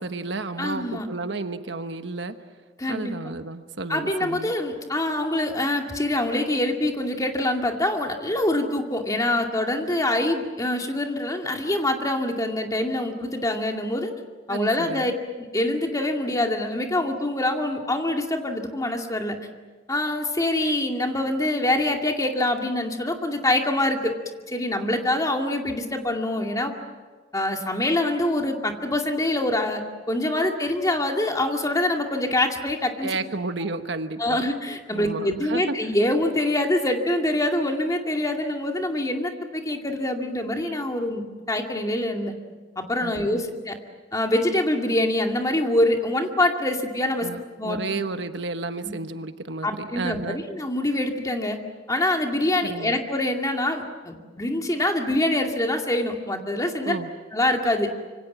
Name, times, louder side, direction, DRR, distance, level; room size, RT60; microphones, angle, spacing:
voice 1, 0.0-2.4 2.9-4.5 14.5-15.1 33.0-34.5 34.9-35.8 43.0-43.4 47.2-50.4 52.6-53.0 56.8-57.1, right 3 dB, 65° right, 9 dB, 1.2 m, -32 dB
voice 2, 0.6-1.1 2.8-3.2 3.9-14.1 14.5-15.1 15.4-19.4 19.9-24.1 24.5-26.7 27.3-33.1 34.2-42.3 42.8-43.8 44.1-47.3 47.6-47.8 48.8-48.9 49.6-51.6 51.9-57.0 57.3-57.9, left 1 dB, 20° left, 3 dB, 2.3 m, -25 dB
26.0 x 25.0 x 7.4 m, 1.4 s
head